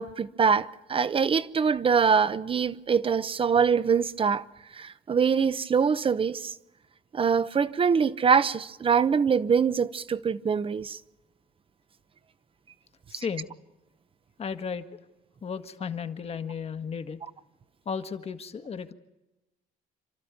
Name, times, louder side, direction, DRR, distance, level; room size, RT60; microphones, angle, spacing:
voice 1, 0.0-4.4 4.7-6.5 7.1-11.0, right 6 dB, 35° right, 0.9 m, -24 dB
voice 2, 13.1-13.5 14.4-14.8 15.4-17.2 17.8-18.9, left 6 dB, 40° left, 1.6 m, -34 dB
28.5 x 12.5 x 9.5 m
cardioid pair, 100°, 16 cm